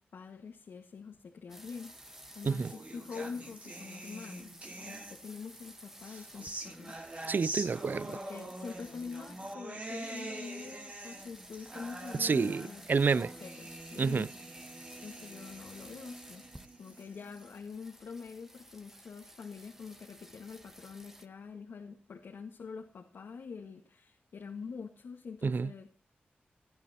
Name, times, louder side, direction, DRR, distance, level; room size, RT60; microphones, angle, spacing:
voice 1, 0.0-1.9 2.3-6.9 8.1-12.8 13.1-14.3 15.0-16.4 16.8-26.0, left 5 dB, 80° left, 1.7 m, -45 dB
sound 1, 1.5-9.5 9.8-21.3, right 1 dB, 10° right, 1.3 m, -54 dB
sound 2, 2.1-5.5 6.0-17.4, right 1 dB, 35° right, 3.1 m, -45 dB
voice 2, 7.3-8.1 12.2-13.3 14.0-14.3 25.4-25.7, right 5 dB, 55° right, 0.4 m, -29 dB
18.0 x 10.5 x 2.9 m
cardioid pair, 50°, 4 cm